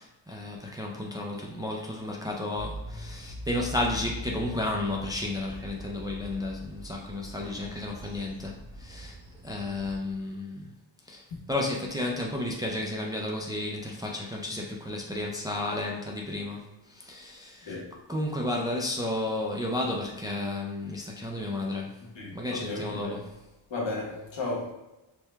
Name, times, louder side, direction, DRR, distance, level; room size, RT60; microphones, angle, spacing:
voice 1, 0.0-9.2 9.4-10.7 11.1-17.8 18.1-22.0 22.3-23.2, left 1 dB, 10° right, 0.3 m, -32 dB
sound 1, 2.5-10.0, left 1 dB, 70° right, 1.0 m, -42 dB
voice 2, 22.1-23.2 23.7-24.7, left 2 dB, 75° left, 1.2 m, -34 dB
4.5 x 2.2 x 3.3 m
wide cardioid pair, 160°, 44 cm